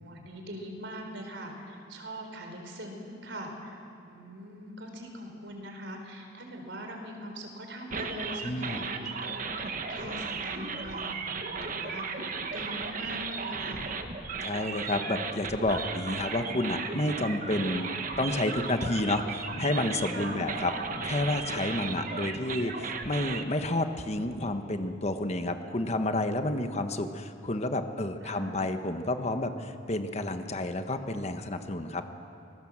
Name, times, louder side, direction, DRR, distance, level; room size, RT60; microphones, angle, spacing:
voice 1, 0.0-3.8 4.0-14.0 14.2-14.9 20.1-20.5 28.2-28.7, equal, 75° right, 3 dB, 4.1 m, -42 dB
sound 1, 7.9-23.4, right 4 dB, 45° right, 1.4 m, -36 dB
voice 2, 8.4-8.9 14.4-20.7 21.0-32.1, left 1 dB, 35° left, 7 dB, 1.2 m, -30 dB
25.0 x 19.5 x 7.4 m, 2.6 s
head